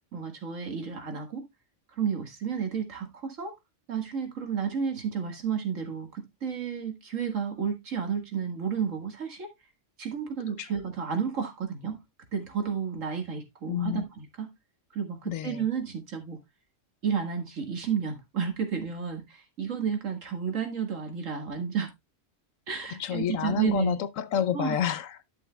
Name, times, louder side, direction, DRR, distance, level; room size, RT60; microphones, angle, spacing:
voice 1, 0.1-1.4 2.0-3.5 3.9-9.5 10.0-12.0 12.3-14.5 14.9-16.4 17.0-21.9 22.7-24.0 24.5-24.8, right 7 dB, 85° right, 2.2 m, -31 dB
voice 2, 13.7-14.1 15.2-15.7 22.9-25.2, left 9 dB, 85° left, 1.1 m, -29 dB
11.5 x 7.2 x 2.3 m
omnidirectional pair, 1.3 m